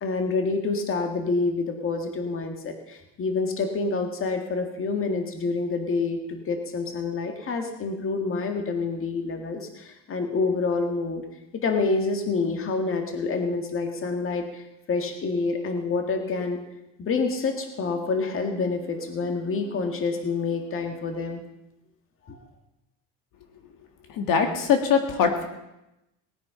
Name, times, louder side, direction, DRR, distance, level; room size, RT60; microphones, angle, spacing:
voice 1, 0.0-11.2 11.5-16.6 17.0-21.4 22.3-22.4, left 4 dB, 35° left, 5 dB, 1.9 m, -27 dB
voice 2, 24.2-25.5, left 6 dB, 65° left, 5 dB, 1.9 m, -22 dB
19.0 x 9.2 x 5.7 m, 0.90 s
cardioid pair, 130°, 35 cm